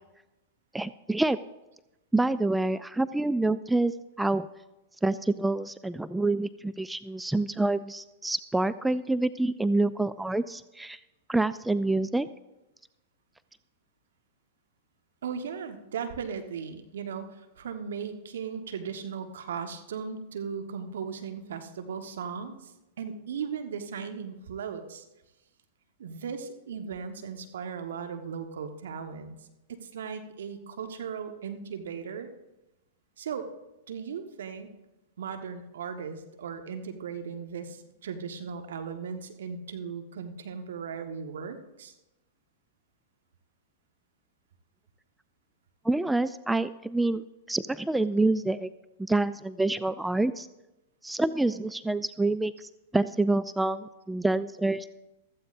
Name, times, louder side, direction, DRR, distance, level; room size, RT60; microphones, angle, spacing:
voice 1, 0.7-1.4 2.1-4.5 5.0-11.0 11.3-12.3 45.8-47.2 47.5-48.7 49.0-50.5 51.0-54.9, right 2 dB, 5° right, 15 dB, 0.3 m, -27 dB
voice 2, 15.2-22.7 23.0-25.0 26.0-29.4 29.7-32.3 33.2-33.5 33.9-34.7 35.2-41.9, right 6 dB, 70° right, 7 dB, 1.3 m, -37 dB
15.5 x 13.5 x 2.6 m, 0.98 s
hypercardioid pair, 100°, 0 cm